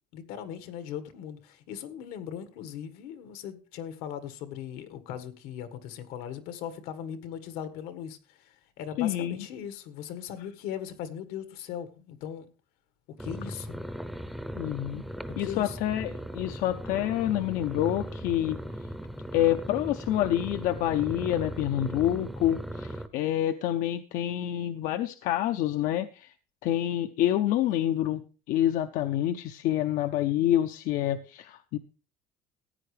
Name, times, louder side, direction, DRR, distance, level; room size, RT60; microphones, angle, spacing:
voice 1, 0.1-12.5 13.2-13.8 15.3-15.8, left 9 dB, 85° left, 11 dB, 1.6 m, -39 dB
voice 2, 9.0-9.5 14.6-15.0 15.4-18.6 19.3-26.3 26.6-28.2 28.5-31.8, left 12 dB, 65° left, 9 dB, 0.7 m, -27 dB
sound 1, 13.2-23.1, equal, ahead, 0.6 m, -38 dB
15.0 x 9.5 x 3.3 m, 0.34 s
cardioid pair, 165°, 15 cm